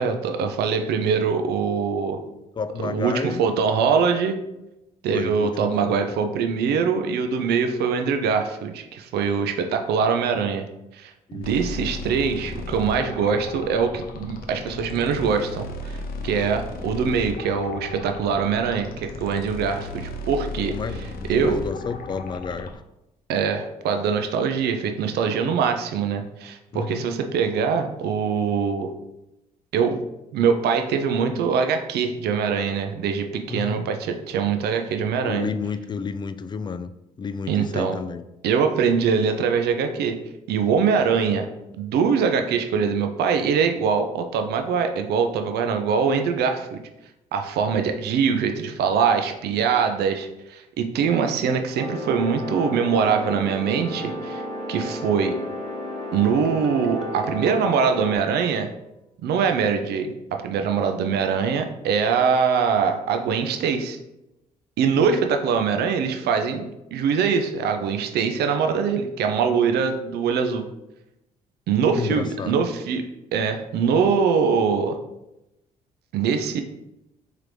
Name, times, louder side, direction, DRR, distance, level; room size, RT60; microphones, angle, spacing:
voice 1, 0.0-2.2 2.8-4.4 5.0-10.7 10.9-20.8 21.3-21.6 23.3-28.9 29.7-30.0 30.3-35.5 37.5-37.9 38.4-40.2 40.5-41.5 41.7-46.8 47.3-54.4 54.7-55.4 56.1-58.7 59.2-64.0 64.8-70.7 71.7-75.0 76.1-76.6, right 6 dB, 60° right, 6 dB, 0.5 m, -23 dB
voice 2, 2.6-3.4 5.1-6.0 11.3-11.5 20.7-22.7 26.7-27.0 33.5-33.8 35.3-36.9 37.2-38.2 71.9-72.6, left 5 dB, 25° left, 11 dB, 0.3 m, -31 dB
sound 1, 11.4-22.7, left 3 dB, 55° left, 0.7 m, -35 dB
sound 2, 51.7-58.2, left 1 dB, 80° left, 1.4 m, -32 dB
Guitar, 56.2-59.0, equal, 5° right, 0.9 m, -41 dB
3.7 x 3.3 x 3.1 m, 0.90 s
hypercardioid pair, 50°, 19 cm